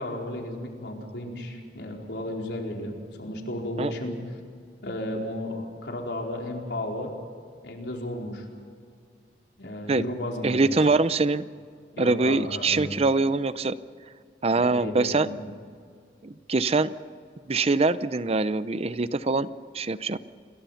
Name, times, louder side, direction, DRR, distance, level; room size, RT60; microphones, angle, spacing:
voice 1, 0.0-4.1 4.8-7.1 7.6-8.5 9.6-10.9 11.9-13.0 14.5-15.5, left 1 dB, 80° left, 0 dB, 4.5 m, -34 dB
voice 2, 10.4-11.4 12.0-13.8 14.4-15.3 16.2-16.9 17.5-19.5 19.7-20.2, right 3 dB, 35° right, 14 dB, 0.6 m, -23 dB
28.0 x 22.0 x 5.7 m, 2.2 s
head